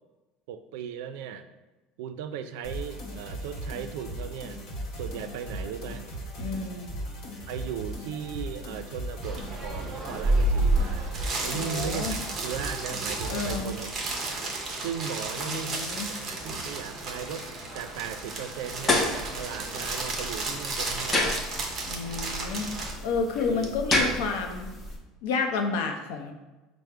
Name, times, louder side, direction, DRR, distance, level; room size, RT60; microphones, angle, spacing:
voice 1, 0.5-1.5 2.0-4.6 4.9-6.1 7.5-13.9 14.3-14.4 14.8-21.4 23.4-23.7, right 8 dB, 75° right, 9 dB, 0.4 m, -37 dB
sound 1, 2.6-13.9, equal, 55° left, 0.8 m, -38 dB
voice 2, 6.4-7.0 11.4-12.1 13.3-13.7 15.4-16.1 21.9-22.7 23.0-24.7 25.2-26.3, left 4 dB, 85° left, 5 dB, 0.6 m, -30 dB
sound 2, 9.2-22.9, right 2 dB, 20° right, 0.7 m, -31 dB
sound 3, 18.5-25.0, left 2 dB, 15° left, 0.5 m, -31 dB
4.9 x 2.0 x 4.5 m, 1.1 s
cardioid pair, 175°, 0 cm